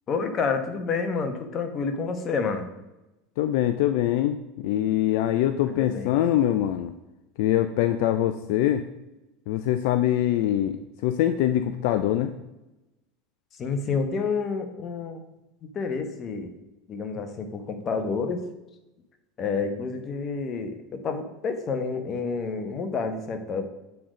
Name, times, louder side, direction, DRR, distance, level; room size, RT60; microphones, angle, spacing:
voice 1, 0.1-2.7 5.7-6.1 13.6-15.2 15.6-16.5 16.9-18.4 19.4-23.7, left 4 dB, 40° left, 7 dB, 1.1 m, -29 dB
voice 2, 3.4-6.9 7.4-8.8 9.5-12.3, left 12 dB, 70° left, 10 dB, 0.4 m, -24 dB
8.6 x 3.9 x 4.9 m, 0.99 s
supercardioid pair, 105°, 0 cm